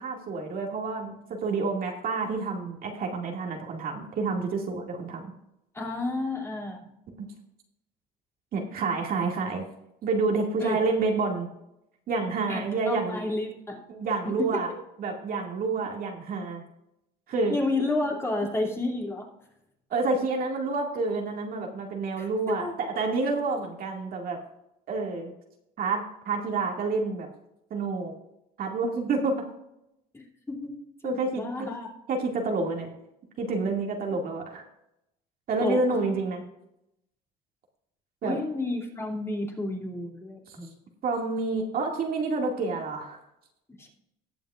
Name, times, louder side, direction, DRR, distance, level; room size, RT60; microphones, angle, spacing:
voice 1, 0.0-5.3 7.2-7.3 8.5-9.7 10.0-11.5 12.1-13.2 13.9-14.7 15.0-16.6 17.3-17.5 19.9-24.4 24.9-25.3 25.8-27.3 27.7-28.1 28.6-29.5 31.0-31.7 32.1-32.9 33.4-34.6 35.5-36.4 38.2-38.4 40.5-40.6 41.0-43.2, right 3 dB, 50° right, 1 dB, 2.2 m, -28 dB
voice 2, 5.7-6.9 10.6-10.8 12.5-13.8 14.2-14.6 17.5-19.3 22.2-22.9 30.1-31.9 35.6-35.8 38.2-40.8 43.8-43.9, left 2 dB, 15° left, -1 dB, 2.8 m, -31 dB
19.0 x 7.1 x 2.5 m, 0.83 s
cardioid pair, 120°, 19 cm